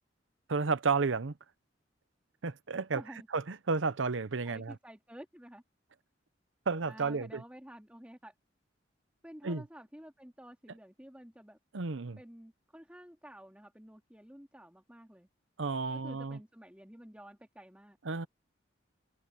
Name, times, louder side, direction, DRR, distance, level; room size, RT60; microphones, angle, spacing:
voice 1, 0.5-1.4 2.4-3.0 3.3-4.7 6.7-7.4 9.4-9.6 11.7-12.2 15.6-16.4 18.0-18.3, right 4 dB, 85° right, 0.8 m, -32 dB
voice 2, 2.9-3.3 4.4-5.6 6.9-8.3 9.2-11.6 12.2-15.3 15.9-18.0, equal, 5° right, 2.7 m, -51 dB
head